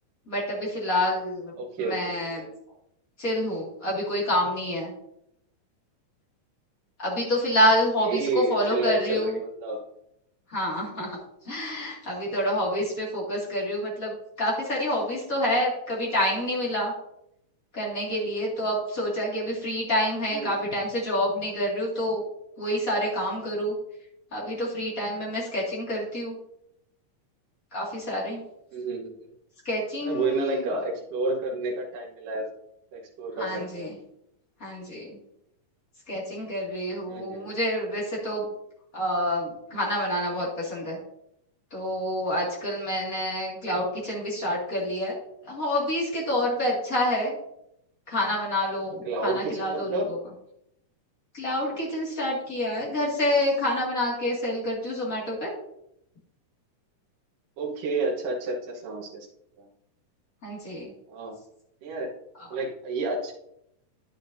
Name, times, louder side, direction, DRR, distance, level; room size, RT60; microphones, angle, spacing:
voice 1, 0.3-1.5 1.8-2.5 3.2-4.9 7.0-9.4 10.5-11.2 11.4-16.9 17.7-22.2 22.6-23.7 24.3-26.4 27.7-28.4 29.7-30.7 33.4-33.9 34.6-35.1 36.1-38.5 38.9-41.0 41.7-45.2 45.4-47.4 48.1-50.2 51.3-55.5 60.4-60.9, left 1 dB, 30° left, -5 dB, 2.2 m, -27 dB
voice 2, 1.6-2.0 2.4-2.5 8.0-9.8 20.3-20.5 28.7-29.1 30.0-32.4 32.9-33.9 37.1-37.5 49.1-50.1 57.6-59.3 59.6-59.7 61.1-61.4 61.8-62.1 62.5-63.3, right 3 dB, 80° right, -3 dB, 2.8 m, -30 dB
10.5 x 8.2 x 2.7 m, 0.79 s
omnidirectional pair, 3.8 m